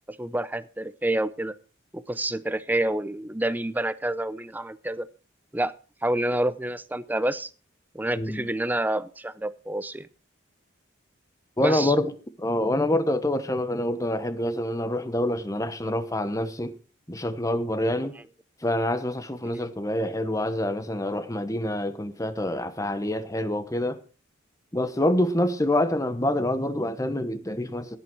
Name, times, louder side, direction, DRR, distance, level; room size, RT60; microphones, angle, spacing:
voice 1, 0.1-1.6 1.9-5.1 5.5-5.7 6.0-7.5 7.9-10.1 11.6-11.9 19.4-19.5, right 1 dB, 10° right, 0.5 m, -28 dB
voice 2, 11.6-12.1 12.4-16.7 17.1-18.2 18.6-24.0 24.7-28.0, left 1 dB, 15° left, 1.0 m, -26 dB
17.0 x 8.7 x 4.6 m
head